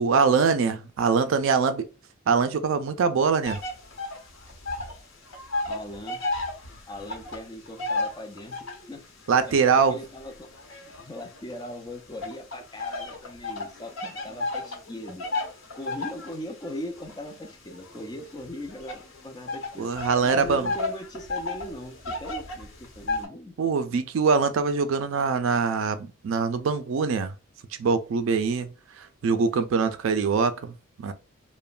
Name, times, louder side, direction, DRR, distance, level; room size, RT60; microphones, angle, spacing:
voice 1, 0.0-1.9 2.3-3.6 9.3-10.0 19.8-20.7 23.6-27.3 27.8-31.1, right 5 dB, 65° right, 0.4 m, -23 dB
sound 1, 3.4-5.0 5.3-8.9 9.5-11.6 12.2-23.3, left 2 dB, 70° left, 0.9 m, -33 dB
voice 2, 5.7-6.2 6.9-10.5 10.8-15.5 15.7-23.5, left 1 dB, 20° left, 0.5 m, -40 dB
3.0 x 2.1 x 2.3 m
head